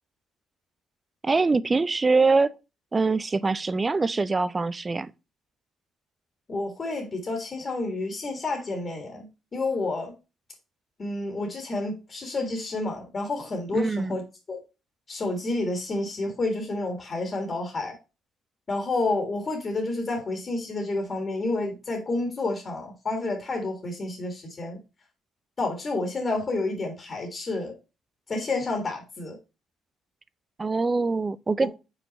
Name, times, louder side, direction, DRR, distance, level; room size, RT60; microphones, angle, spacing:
voice 1, 1.2-2.5 2.9-5.1 13.7-14.2 30.6-31.7, right 3 dB, 25° right, 0.4 m, -23 dB
voice 2, 6.5-10.1 11.0-14.2 14.5-14.6 15.1-18.0 18.7-24.8 25.6-27.7 28.3-29.4 31.6-31.7, left 2 dB, 35° left, 1.8 m, -29 dB
5.5 x 4.4 x 4.1 m
cardioid pair, 105°, 0 cm